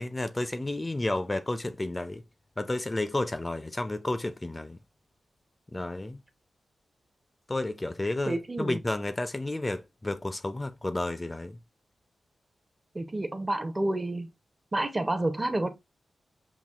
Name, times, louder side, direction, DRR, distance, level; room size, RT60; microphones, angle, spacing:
voice 1, 0.0-2.2 2.6-4.8 5.7-6.2 7.5-11.6, left 2 dB, 25° left, 0.4 m, -31 dB
voice 2, 8.3-8.8 12.9-14.3 14.7-15.7, right 1 dB, 25° right, 0.6 m, -29 dB
5.7 x 2.4 x 2.3 m
cardioid pair, 60°, 0 cm